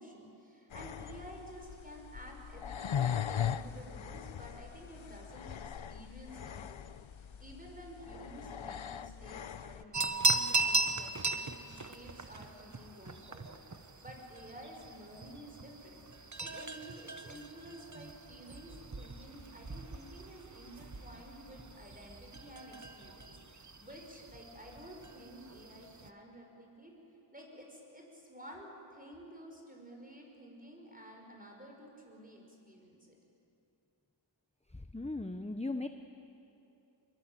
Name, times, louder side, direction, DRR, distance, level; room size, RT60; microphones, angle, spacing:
voice 1, 0.0-26.9 27.3-33.2, equal, 20° right, 0 dB, 6.0 m, -52 dB
sound 1, 0.7-9.8, left 8 dB, 80° left, 0.8 m, -39 dB
sound 2, 9.9-26.1, right 3 dB, 40° right, 1.3 m, -38 dB
voice 2, 34.7-35.9, left 2 dB, 15° left, 8 dB, 0.9 m, -38 dB
25.5 x 22.5 x 9.1 m, 2.8 s
wide cardioid pair, 65°, 46 cm